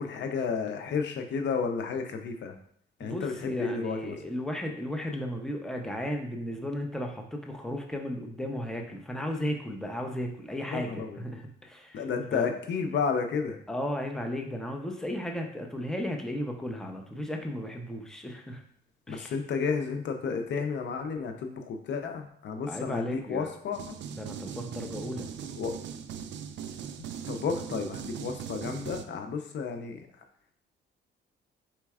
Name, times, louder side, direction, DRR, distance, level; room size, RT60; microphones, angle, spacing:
voice 1, 0.0-2.5 3.0-4.2 10.7-11.2 11.9-13.6 19.1-24.0 25.5-25.7 27.3-30.0, left 5 dB, 65° left, 6 dB, 0.6 m, -32 dB
voice 2, 3.0-12.0 12.3-12.4 13.7-18.6 19.1-19.3 22.7-23.5 24.2-25.3, equal, 5° left, 3 dB, 0.6 m, -35 dB
sound 1, 23.7-29.0, right 8 dB, 65° right, 0.4 m, -40 dB
4.4 x 4.1 x 2.4 m, 0.64 s
cardioid pair, 90°, 20 cm